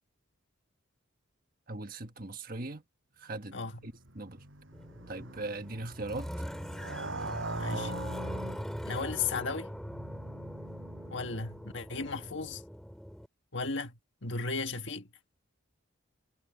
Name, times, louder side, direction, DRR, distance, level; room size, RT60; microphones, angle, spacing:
voice 1, 1.7-2.8 3.2-3.6 3.8-4.4 5.1-6.3, right 2 dB, 45° right, 1.5 m, -39 dB
voice 2, 3.5-3.9 7.6-8.0 8.8-9.7 11.1-12.6 13.5-15.1, left 4 dB, 60° left, 1.8 m, -35 dB
Motorcycle, 3.7-11.8, right 2 dB, 65° right, 6.5 m, -43 dB
sound 1, 4.7-13.3, equal, ahead, 4.7 m, -41 dB
head